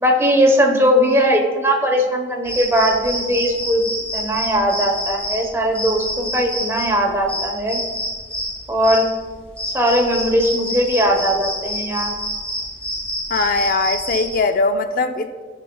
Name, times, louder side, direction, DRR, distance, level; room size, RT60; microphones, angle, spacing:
voice 1, 0.0-7.8 8.7-9.1 9.7-12.1, equal, 15° right, 1 dB, 1.0 m, -19 dB
sound 1, 2.4-14.4, equal, 5° left, 2.3 m, -28 dB
voice 2, 13.3-15.4, left 3 dB, 50° left, 8 dB, 0.3 m, -20 dB
14.0 x 5.6 x 2.3 m, 1.5 s
head